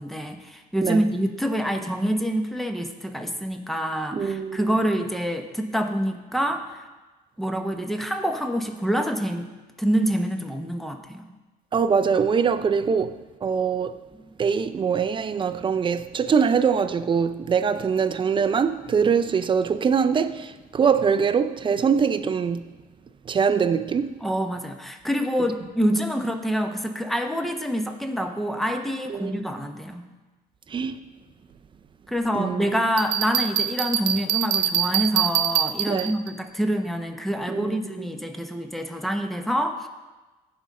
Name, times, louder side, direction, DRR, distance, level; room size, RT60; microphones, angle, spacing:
voice 1, 0.0-6.9 7.4-9.5 9.8-11.3 24.2-30.1 32.1-39.9, equal, ahead, 0.9 m, -26 dB
voice 2, 4.1-4.7 11.7-14.0 14.4-22.7 23.3-24.2 29.1-29.4 30.7-31.0 32.3-32.8 35.9-36.1 37.5-37.8, right 6 dB, 30° right, 0.5 m, -23 dB
Bell, 33.0-36.3, right 11 dB, 85° right, 0.6 m, -24 dB
16.0 x 5.3 x 3.7 m
cardioid pair, 110°, 17 cm